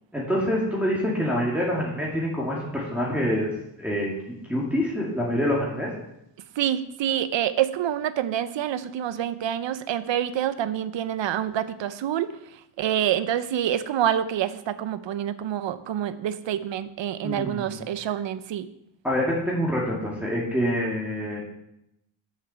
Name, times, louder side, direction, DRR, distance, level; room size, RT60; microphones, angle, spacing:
voice 1, 0.1-3.5 3.8-4.1 4.5-5.9 17.2-17.8 19.0-21.4, equal, 5° right, -6 dB, 2.2 m, -26 dB
voice 2, 6.6-12.3 12.8-18.7, right 10 dB, 65° right, 13 dB, 0.7 m, -27 dB
7.5 x 6.5 x 6.9 m, 0.82 s
cardioid pair, 100°, 48 cm